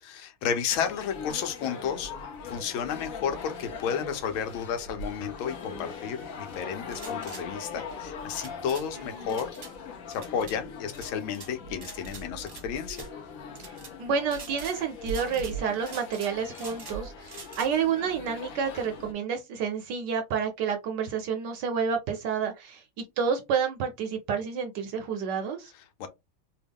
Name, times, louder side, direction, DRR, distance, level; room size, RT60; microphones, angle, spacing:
voice 1, 0.0-2.1 2.4-9.5 10.1-13.1 26.0-26.1, left 7 dB, 80° left, 1.5 m, -32 dB
sound 1, 0.7-19.1, left 3 dB, 65° left, 0.8 m, -41 dB
sound 2, 6.9-7.4 8.3-8.9 9.3-9.7 10.1-10.6 10.9-11.5 11.8-12.6 12.9-13.1 13.6-13.9 14.3-14.8 15.1-15.5 15.8-17.0 17.3-17.7, right 4 dB, 45° right, 0.8 m, -45 dB
voice 2, 9.0-9.3 13.6-22.8 23.2-25.7, right 6 dB, 70° right, 1.1 m, -30 dB
3.4 x 2.3 x 3.4 m
omnidirectional pair, 2.2 m